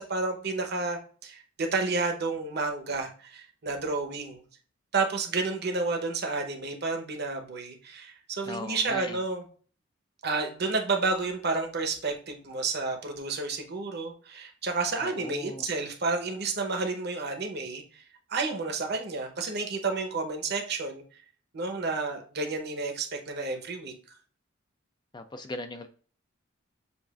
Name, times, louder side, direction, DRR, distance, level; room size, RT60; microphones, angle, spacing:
voice 1, 0.0-4.4 4.9-9.4 10.2-18.0 18.3-21.0 21.5-23.9, right 3 dB, 55° right, 4 dB, 0.8 m, -31 dB
voice 2, 8.5-9.2 15.0-15.7 25.1-25.9, left 2 dB, 20° left, 8 dB, 0.3 m, -39 dB
7.0 x 2.4 x 2.4 m, 0.43 s
head